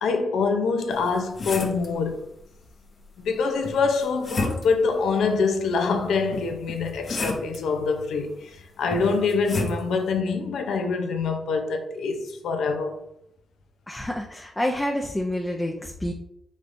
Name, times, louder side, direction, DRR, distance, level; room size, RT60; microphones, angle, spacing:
voice 1, 0.0-2.2 3.2-13.0, left 4 dB, 80° left, 0.6 m, -25 dB
sound 1, 0.9-1.9 3.6-4.9 6.3-7.6 8.9-9.8, left 2 dB, 55° left, 0.9 m, -31 dB
voice 2, 13.9-16.1, left 1 dB, 15° left, 0.6 m, -28 dB
5.1 x 3.3 x 2.6 m
cardioid pair, 60°, 0 cm